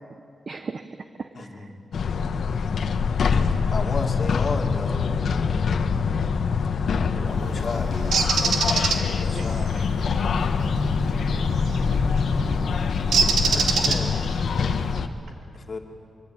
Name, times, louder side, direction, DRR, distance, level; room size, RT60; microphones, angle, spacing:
voice 1, 0.5-1.7 11.8-12.1 12.5-13.1, right 4 dB, 40° right, 9 dB, 0.8 m, -39 dB
voice 2, 1.4-1.8 3.7-5.7 6.9-8.0 8.7-8.8 9.1-9.7 13.5-14.1 15.7-15.8, left 3 dB, 40° left, 3 dB, 2.5 m, -33 dB
sound 1, 1.9-15.1, left 5 dB, 65° left, 1.2 m, -24 dB
voice 3, 7.0-10.2 11.2-11.6 13.2-13.9, right 2 dB, 65° right, 4 dB, 4.2 m, -41 dB
Bird, 8.1-9.0 11.6-11.8 13.1-14.3, right 5 dB, 85° right, 2.0 m, -22 dB
24.0 x 23.5 x 8.9 m, 2.5 s
wide cardioid pair, 135°, 0 cm